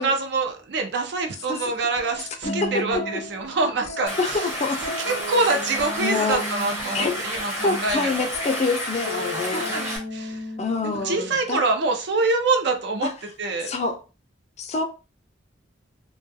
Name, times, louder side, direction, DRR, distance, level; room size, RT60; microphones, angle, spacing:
voice 1, 0.0-4.4 5.1-8.1 9.5-10.4 10.8-13.1 13.4-13.7, right 3 dB, 65° right, 0.5 m, -25 dB
Plucked string instrument, 1.8-9.0 10.1-10.4, equal, 85° right, 1.0 m, -39 dB
sound 1, 2.4-3.5 5.0-7.5 9.0-11.5, equal, 65° left, 0.7 m, -35 dB
voice 2, 2.4-2.8 4.2-5.0 6.0-6.4 6.9-7.2 7.6-9.8 10.6-11.6 13.0-13.1 13.6-14.0 14.6-14.8, left 3 dB, 35° left, 0.4 m, -26 dB
Stream, 4.1-10.0, equal, 15° right, 0.7 m, -31 dB
2.3 x 2.3 x 2.6 m
head